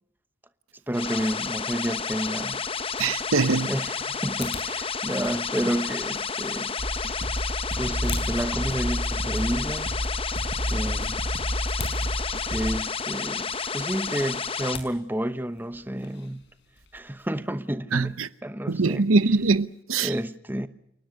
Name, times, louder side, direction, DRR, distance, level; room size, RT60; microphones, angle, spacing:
sound 1, 0.9-14.8, left 5 dB, 25° left, 0.9 m, -31 dB
voice 1, 0.9-2.6 3.7-6.7 7.8-9.9 10.7-11.2 12.5-16.4 16.9-19.1 20.0-20.7, equal, 10° right, 0.9 m, -30 dB
sound 2, 2.4-17.7, left 4 dB, 55° left, 5.1 m, -45 dB
voice 2, 3.0-3.7 17.9-18.3 18.7-20.1, right 3 dB, 80° right, 0.9 m, -22 dB
sound 3, 6.8-12.8, equal, 35° right, 1.6 m, -30 dB
29.5 x 18.5 x 6.5 m
head